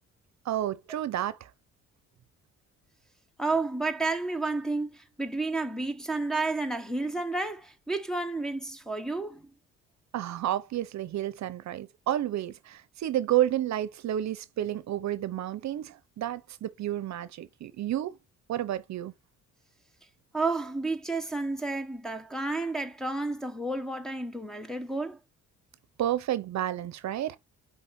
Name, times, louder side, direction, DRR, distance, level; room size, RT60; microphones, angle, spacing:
voice 1, 0.5-1.5 10.1-18.2 18.5-19.1 26.0-27.4, right 12 dB, 65° right, 0.7 m, -30 dB
voice 2, 3.4-9.5 20.3-25.2, right 3 dB, ahead, 0.9 m, -31 dB
5.6 x 3.4 x 5.6 m
cardioid pair, 90°, 30 cm